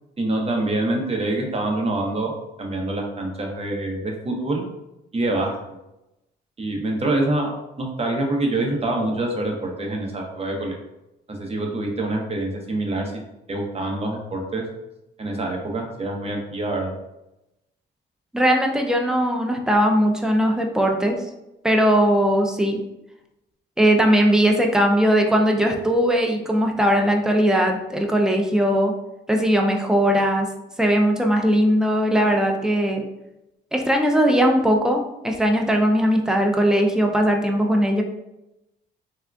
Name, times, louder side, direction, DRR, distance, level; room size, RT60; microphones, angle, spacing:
voice 1, 0.2-2.3 2.6-4.6 5.1-5.8 6.6-7.5 7.8-10.8 11.4-13.1 13.5-14.6 15.2-16.9, right 2 dB, 30° right, 1 dB, 0.7 m, -25 dB
voice 2, 18.3-21.2 21.6-22.8 23.8-28.9 29.3-30.5 30.8-33.0 33.7-38.0, equal, 5° right, 2 dB, 0.4 m, -19 dB
3.5 x 2.3 x 2.3 m, 0.92 s
cardioid pair, 90°, 20 cm